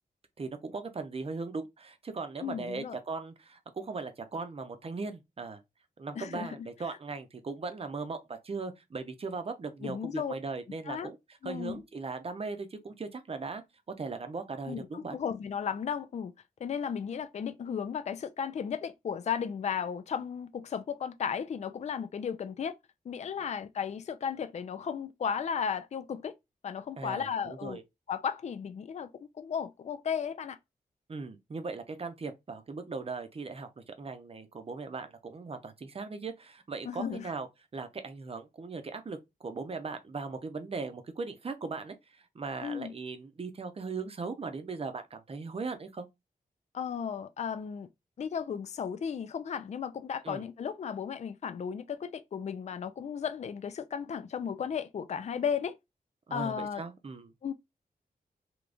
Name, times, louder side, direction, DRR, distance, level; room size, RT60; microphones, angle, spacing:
voice 1, 0.4-5.6 6.0-11.2 11.4-13.6 14.0-15.2 27.0-27.8 31.1-37.5 37.7-46.1 50.2-50.4 56.3-57.5, right 4 dB, 40° right, 0.7 m, -39 dB
voice 2, 2.4-3.0 6.2-6.5 9.8-10.3 10.9-11.1 11.4-11.8 14.7-16.3 16.6-22.8 23.1-26.3 26.6-27.8 28.1-29.1 29.4-30.6 36.9-37.3 42.6-42.9 46.7-47.9 48.2-55.7 56.3-56.8 57.4-57.5, left 7 dB, 45° left, 0.4 m, -35 dB
3.4 x 3.0 x 2.5 m
wide cardioid pair, 100°, 16 cm